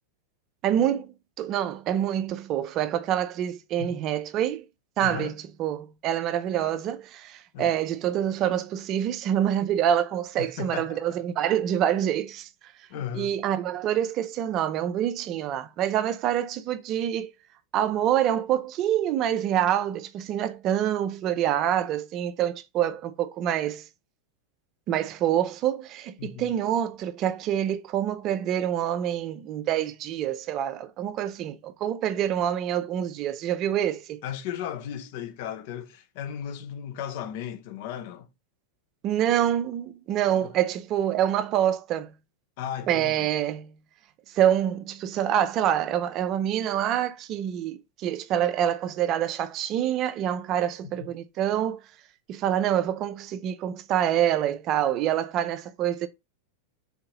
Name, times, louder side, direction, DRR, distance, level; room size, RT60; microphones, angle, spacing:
voice 1, 0.6-4.7 5.0-12.7 13.1-17.3 17.7-23.9 24.9-34.2 39.0-42.1 42.9-43.7 44.3-51.8 52.3-56.1, right 10 dB, 35° right, 0.4 m, -26 dB
voice 2, 5.0-5.3 7.5-7.8 10.4-11.0 12.9-13.3 26.2-26.5 34.2-38.3 40.3-40.5 42.6-43.3 51.0-51.1, left 9 dB, 50° left, 0.6 m, -35 dB
3.4 x 2.7 x 3.0 m
figure-of-eight pair, 90°, 0 cm